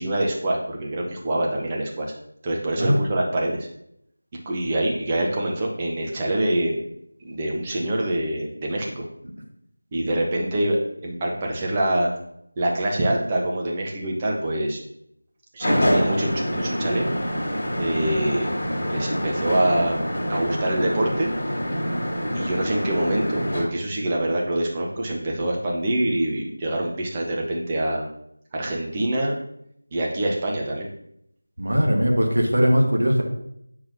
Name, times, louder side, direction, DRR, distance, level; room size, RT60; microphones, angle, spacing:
voice 1, 0.0-2.1 2.4-3.7 4.5-6.8 7.2-9.0 9.9-12.1 12.6-14.8 15.5-17.1 17.8-18.5 18.8-21.3 22.3-28.0 28.5-29.4 29.9-30.9, right 1 dB, 15° right, -1 dB, 0.8 m, -25 dB
sound 1, 15.6-23.6, equal, 25° left, 1.6 m, -26 dB
voice 2, 31.6-33.2, equal, 60° right, 1 dB, 1.4 m, -19 dB
8.8 x 4.8 x 2.7 m, 0.74 s
figure-of-eight pair, 165°, 0 cm